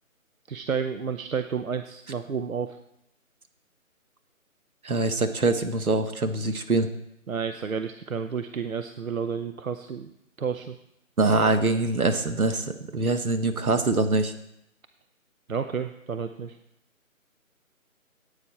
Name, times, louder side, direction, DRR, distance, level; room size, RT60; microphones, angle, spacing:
voice 1, 0.5-2.8 7.3-10.1 10.4-10.8 15.5-16.6, right 6 dB, 70° right, 9 dB, 0.8 m, -31 dB
voice 2, 4.8-6.9 11.2-14.3, right 3 dB, 85° right, 8 dB, 1.6 m, -24 dB
14.5 x 9.0 x 4.3 m, 0.80 s
figure-of-eight pair, 180°, 42 cm